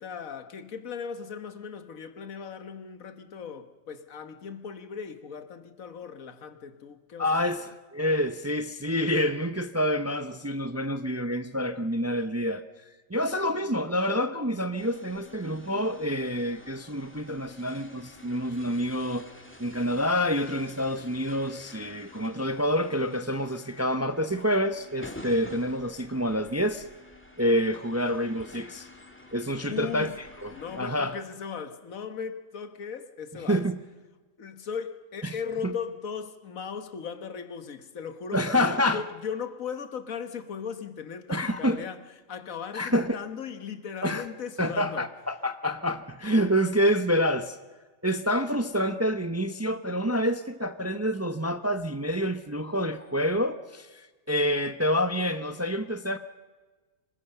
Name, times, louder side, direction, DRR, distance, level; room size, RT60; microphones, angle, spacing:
voice 1, 0.0-7.5 29.7-30.2 30.5-33.6 34.4-42.0 42.3-45.1, left 6 dB, 90° left, 1.6 m, -37 dB
voice 2, 7.2-12.6 13.1-19.3 19.6-26.8 27.4-28.9 29.3-30.1 30.4-31.2 33.5-33.8 35.2-35.4 35.6-35.7 38.3-39.0 41.3-41.8 42.7-43.2 44.0-44.2 44.6-47.6 48.0-56.2, equal, 15° right, 0.5 m, -27 dB
sound 1, 14.8-30.9, left 2 dB, 10° left, 1.8 m, -49 dB
25.5 x 20.0 x 6.7 m
omnidirectional pair, 1.4 m